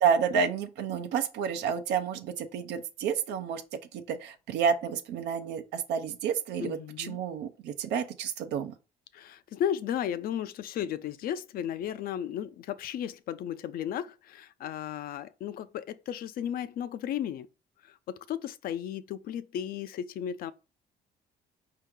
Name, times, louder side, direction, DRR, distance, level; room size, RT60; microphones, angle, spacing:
voice 1, 0.0-3.6 3.9-8.7, right 7 dB, 85° right, 0.7 m, -30 dB
voice 2, 6.6-7.2 9.1-17.5 18.1-20.5, left 10 dB, 60° left, 0.4 m, -34 dB
4.7 x 2.8 x 3.7 m
cardioid pair, 110°, 17 cm